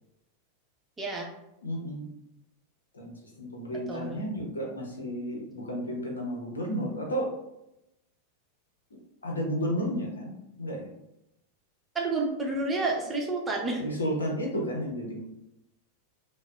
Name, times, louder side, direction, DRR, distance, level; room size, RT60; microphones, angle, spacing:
voice 1, 1.0-1.3 3.9-4.2 11.9-13.8, right 3 dB, 15° right, -1 dB, 0.8 m, -29 dB
voice 2, 1.6-2.1 2.9-7.3 8.9-10.9 13.8-15.2, equal, 75° left, 0 dB, 0.8 m, -32 dB
5.3 x 2.1 x 2.4 m, 0.87 s
figure-of-eight pair, 90°, 0 cm